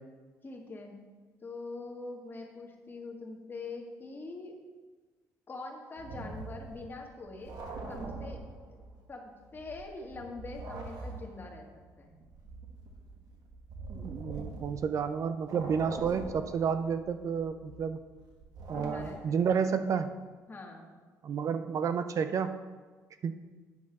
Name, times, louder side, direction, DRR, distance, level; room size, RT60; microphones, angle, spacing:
voice 1, 0.4-1.0 1.4-4.6 5.5-7.6 7.9-8.4 8.7-8.8 9.1-11.7 12.0-12.2 18.7-19.6 20.5-20.9, left 3 dB, 30° left, 1 dB, 1.7 m, -43 dB
sound 1, 6.0-9.1 9.4-15.1 15.4-19.5, right 3 dB, 65° right, 1.5 m, -44 dB
voice 2, 13.9-18.0 18.7-20.2 21.2-22.7 23.2-23.4, right 6 dB, 50° right, 10 dB, 0.5 m, -31 dB
9.6 x 4.5 x 6.0 m, 1.4 s
cardioid pair, 85°, 7 cm